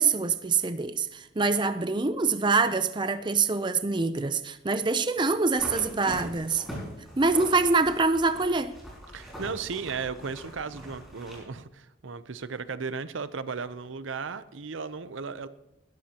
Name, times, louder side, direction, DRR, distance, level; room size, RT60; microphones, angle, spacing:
voice 1, 0.0-6.6 7.2-8.7, right 4 dB, 25° right, 10 dB, 0.5 m, -25 dB
sound 1, 5.5-11.4, equal, ahead, 5.5 m, -42 dB
voice 2, 9.1-15.5, right 5 dB, 75° right, 13 dB, 0.7 m, -35 dB
20.0 x 13.0 x 2.9 m, 0.86 s
head